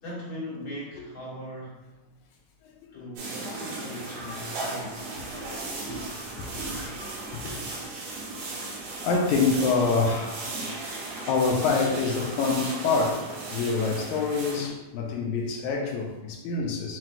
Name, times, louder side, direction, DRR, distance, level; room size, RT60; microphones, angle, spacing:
voice 1, 0.0-1.8 2.9-5.1, left 1 dB, 50° left, -6 dB, 1.9 m, -39 dB
voice 2, 2.6-3.0 5.3-6.9 7.3-7.6 9.0-10.5 10.9-17.0, left 4 dB, 80° left, 1 dB, 1.8 m, -27 dB
sound 1, 3.2-14.7, right 2 dB, 80° right, 2.6 m, -36 dB
7.5 x 2.9 x 2.2 m, 1.0 s
omnidirectional pair, 3.7 m